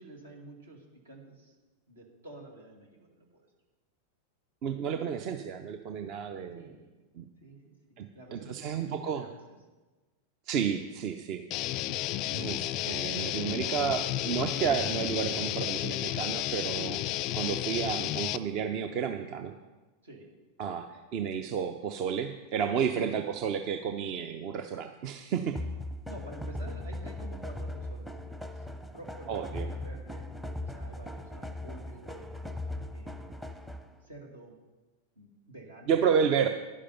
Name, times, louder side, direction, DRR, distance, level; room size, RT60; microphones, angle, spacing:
voice 1, 0.0-1.5 1.9-3.5 6.5-7.0 7.4-9.4 20.0-20.3 22.9-23.2 26.1-30.3 30.6-32.3 32.9-33.6 34.0-34.6 35.2-36.2, right 1 dB, 70° right, 1 dB, 2.3 m, -49 dB
voice 2, 4.6-6.8 7.2-7.3 8.0-9.2 10.5-11.4 12.2-17.0 17.3-19.5 20.6-25.6 29.3-29.7 35.9-36.5, right 7 dB, 40° right, 8 dB, 0.6 m, -31 dB
Guitar, 11.5-18.4, left 14 dB, 40° left, 0.4 m, -32 dB
sound 1, 25.6-34.0, left 1 dB, 5° right, 0.8 m, -39 dB
11.0 x 10.0 x 5.6 m, 1.2 s
figure-of-eight pair, 90°, 0 cm